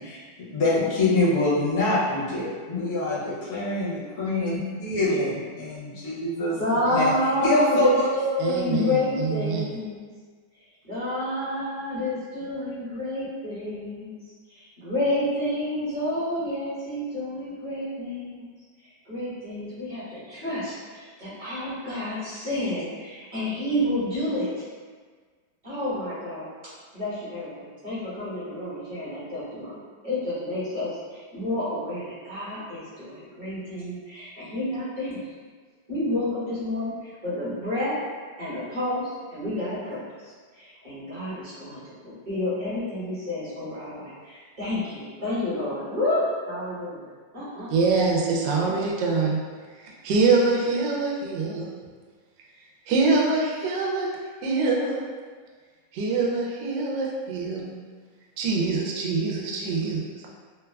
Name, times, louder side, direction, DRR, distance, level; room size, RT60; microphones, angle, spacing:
voice 1, 0.0-6.6 6.9-7.1 7.4-8.1, left 2 dB, 50° left, -8 dB, 0.8 m, -25 dB
voice 2, 6.6-10.0 10.5-18.5 18.8-24.6 25.6-26.4 26.9-29.8 30.0-35.2 35.9-37.9 38.4-47.9, left 1 dB, 25° right, -11 dB, 0.9 m, -29 dB
voice 3, 8.4-9.6 47.7-49.4 49.8-51.7 52.9-54.1 54.4-55.0 55.9-57.8 58.4-60.0, right 4 dB, 75° right, -2 dB, 1.1 m, -24 dB
3.5 x 2.2 x 2.2 m, 1.5 s
omnidirectional pair, 2.1 m